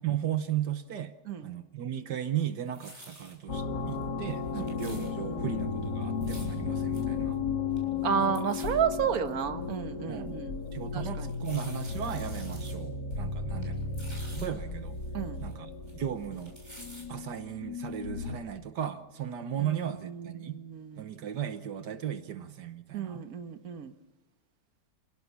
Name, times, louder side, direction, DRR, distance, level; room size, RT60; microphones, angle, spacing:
voice 1, 0.0-1.1 1.4-7.4 8.2-8.3 10.1-10.4 10.7-13.8 14.3-15.0 15.4-16.6 17.1-20.6 21.0-23.2, right 10 dB, 80° right, 9 dB, 1.7 m, -36 dB
sound 1, 2.4-3.3 3.9-4.0 4.3-5.1 6.0-6.5 6.9-7.0 7.3-7.4 7.7-8.0 8.3-8.7 9.3-9.4 9.9-10.0 11.1-12.8 13.1-13.2 13.5-14.5 14.9-17.0 17.5-17.6, right 1 dB, 15° right, 7.1 m, -50 dB
sound 2, 3.5-18.5, left 4 dB, 85° left, 2.9 m, -34 dB
voice 2, 8.0-10.6 10.9-11.3 15.1-15.4 19.6-21.1 22.9-23.9, right 7 dB, 60° right, 8 dB, 1.8 m, -32 dB
28.5 x 17.5 x 7.1 m, 1.1 s
omnidirectional pair, 1.8 m